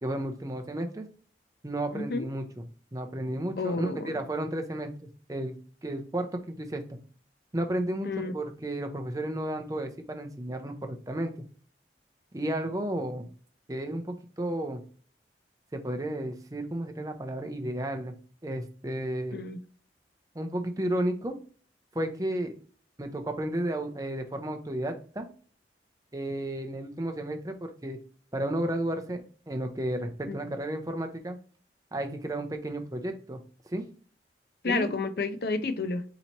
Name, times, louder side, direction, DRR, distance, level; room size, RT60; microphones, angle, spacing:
voice 1, 0.0-1.1 1.6-2.4 2.9-4.9 5.3-5.6 5.8-7.0 7.5-8.1 8.3-11.3 12.3-13.3 13.7-14.8 15.8-18.1 18.4-19.4 20.3-21.3 21.9-22.5 23.0-25.3 26.1-28.0 28.3-31.4 31.9-33.4 33.7-33.8 34.6-34.9, right 1 dB, 20° right, 0.6 m, -32 dB
voice 2, 1.9-2.3 3.6-4.2 8.0-8.3 19.3-19.6 30.3-30.4 34.6-36.0, left 3 dB, 55° left, 0.4 m, -30 dB
4.1 x 2.9 x 4.3 m
head